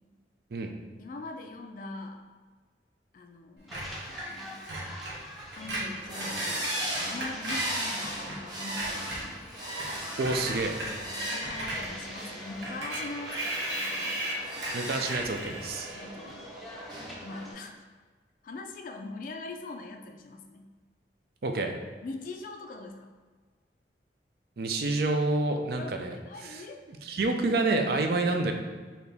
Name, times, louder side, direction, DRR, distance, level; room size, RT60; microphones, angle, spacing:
voice 1, 1.0-2.2 3.1-3.8 4.3-4.7 5.5-9.3 11.0-14.2 15.9-16.5 17.2-17.9 18.4-20.7 22.0-23.1 25.8-26.8, left 3 dB, 50° left, 4 dB, 0.3 m, -42 dB
sound 1, 3.7-17.7, equal, ahead, 0.6 m, -47 dB
Screech, 3.7-8.4 8.7-16.1, right 1 dB, 85° right, 1.0 m, -37 dB
sound 2, 6.1-17.5, right 1 dB, 25° right, 0.9 m, -38 dB
voice 2, 10.2-10.8 14.7-15.9 21.4-21.7 24.6-26.2 26.4-26.6 27.0-28.5, right 2 dB, 60° right, 4 dB, 0.4 m, -28 dB
4.2 x 2.9 x 3.4 m, 1.4 s
head